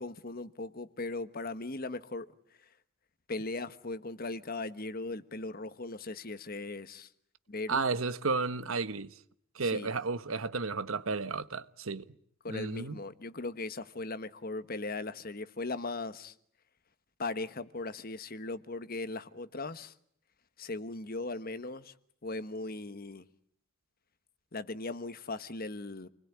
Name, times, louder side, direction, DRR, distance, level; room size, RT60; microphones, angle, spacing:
voice 1, 0.0-2.3 2.6-2.7 3.3-7.1 7.5-7.8 9.6-9.9 12.4-16.3 17.2-19.9 20.6-22.0 22.2-23.3 24.5-26.1, left 2 dB, 45° left, 1.3 m, -38 dB
voice 2, 7.7-9.1 9.5-12.1 12.5-13.0, right 4 dB, 90° right, 1.2 m, -32 dB
29.0 x 20.5 x 9.8 m
head